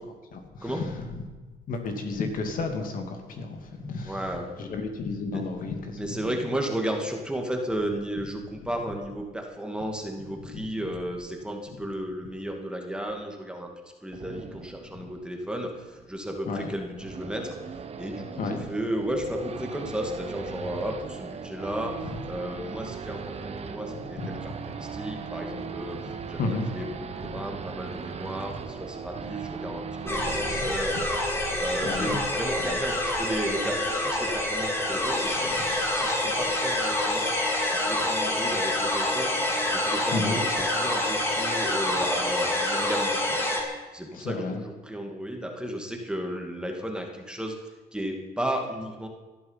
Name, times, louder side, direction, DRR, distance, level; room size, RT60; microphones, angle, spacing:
voice 1, 0.3-0.8 1.7-4.2 4.6-6.2 16.5-16.7 18.4-18.7 26.4-26.7 31.8-32.2 32.5-32.6 35.6-35.7 40.1-40.4 44.1-44.6, left 3 dB, 55° left, 4 dB, 2.8 m, -32 dB
voice 2, 4.0-4.5 5.3-5.4 6.0-13.7 14.0-17.6 18.0-31.3 31.6-35.6 35.9-37.3 37.7-39.3 39.7-43.4 43.9-49.1, right 1 dB, 5° right, 2 dB, 2.3 m, -34 dB
Race car auto racing / Idling / Accelerating revving vroom, 14.1-30.7, right 5 dB, 40° right, 1.5 m, -39 dB
sound 1, 30.1-43.6, left 1 dB, 15° left, 3.7 m, -27 dB
18.5 x 12.0 x 5.8 m, 1.3 s
cardioid pair, 110°, 17 cm